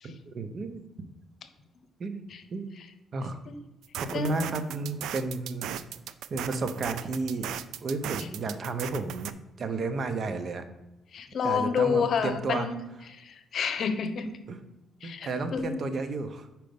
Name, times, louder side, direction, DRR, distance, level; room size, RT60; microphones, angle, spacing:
voice 1, 0.0-0.8 2.0-2.3 2.5-2.7 3.1-3.4 3.9-5.7 6.3-7.5 7.8-10.6 11.4-12.7 14.5-14.6 15.0-16.5, right 3 dB, 50° right, 9 dB, 0.7 m, -32 dB
sound 1, 3.8-9.3, right 10 dB, 85° right, 0.3 m, -37 dB
voice 2, 11.1-12.7 13.2-14.3 15.0-15.7, left 6 dB, 60° left, 10 dB, 0.7 m, -29 dB
5.2 x 4.5 x 5.2 m, 0.96 s
cardioid pair, 90°, 0 cm